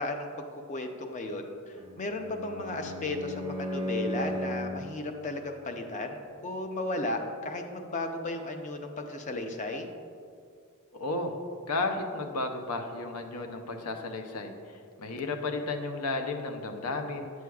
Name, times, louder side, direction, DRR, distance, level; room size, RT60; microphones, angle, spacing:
voice 1, 0.0-9.9, left 2 dB, 35° left, 5 dB, 0.5 m, -35 dB
Bowed string instrument, 1.8-4.9, equal, 20° right, 0.5 m, -35 dB
voice 2, 10.9-11.3 11.7-17.3, left 3 dB, 90° left, 5 dB, 0.6 m, -33 dB
8.1 x 6.2 x 2.3 m, 2.3 s
head